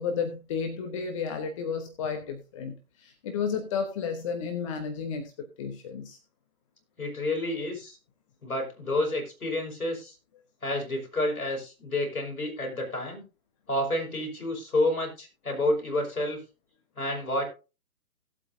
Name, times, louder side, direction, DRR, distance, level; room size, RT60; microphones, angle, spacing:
voice 1, 0.0-5.3 5.6-6.2, left 6 dB, 20° left, 5 dB, 1.1 m, -32 dB
voice 2, 7.0-8.0 8.4-10.2 10.6-13.2 13.7-16.4 17.0-17.4, left 1 dB, 70° left, 1 dB, 5.6 m, -29 dB
17.5 x 8.2 x 2.7 m, 0.31 s
figure-of-eight pair, 135°, 45 cm